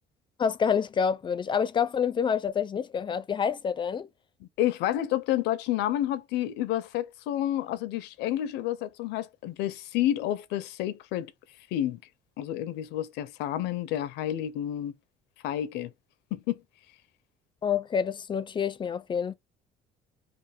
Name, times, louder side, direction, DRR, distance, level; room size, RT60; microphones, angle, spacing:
voice 1, 0.4-4.1 17.6-19.3, left 7 dB, 30° left, 0.4 m, -27 dB
voice 2, 4.4-11.3 11.7-12.0 12.4-14.9 15.4-15.9 16.3-16.6, left 12 dB, 90° left, 0.5 m, -30 dB
3.2 x 2.0 x 3.2 m
cardioid pair, 110°, 17 cm